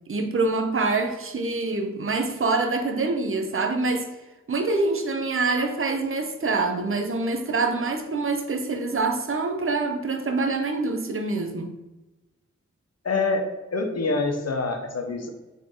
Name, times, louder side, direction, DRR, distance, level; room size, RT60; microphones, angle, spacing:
voice 1, 0.1-4.1 4.5-11.7, right 3 dB, 45° right, 0.7 m, -25 dB
voice 2, 13.0-15.3, left 3 dB, 60° left, 0.9 m, -26 dB
3.8 x 3.7 x 3.8 m
cardioid pair, 45°, 29 cm